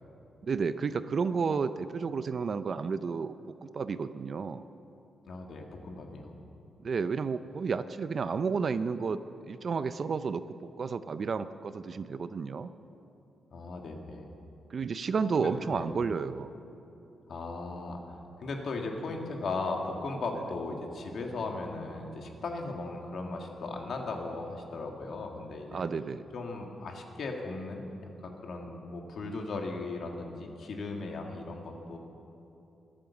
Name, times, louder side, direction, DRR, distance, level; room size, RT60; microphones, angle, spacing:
voice 1, 0.4-3.3 3.6-4.6 6.8-10.4 10.8-12.7 14.7-16.5 25.7-26.2, right 5 dB, 40° right, 13 dB, 0.4 m, -31 dB
voice 2, 5.3-6.3 13.5-14.3 15.4-15.9 17.3-25.8 26.3-27.9 28.2-32.0, left 3 dB, 55° left, 2 dB, 1.9 m, -37 dB
23.0 x 8.9 x 7.1 m, 2.9 s
wide cardioid pair, 160°, 0 cm